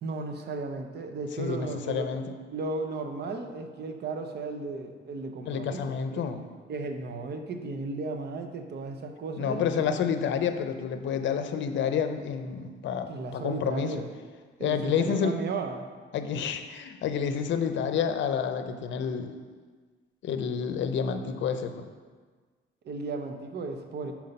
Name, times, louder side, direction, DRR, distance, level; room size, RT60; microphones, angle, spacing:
voice 1, 0.0-2.1 2.5-6.3 6.7-10.0 13.1-14.1 14.6-15.9 22.8-24.1, right 3 dB, 55° right, 6 dB, 0.8 m, -35 dB
voice 2, 1.4-2.4 5.5-6.4 9.4-14.0 14.6-15.4 16.1-19.3 20.2-21.9, left 7 dB, 70° left, 8 dB, 0.6 m, -29 dB
5.7 x 4.5 x 5.3 m, 1.5 s
cardioid pair, 90°, 20 cm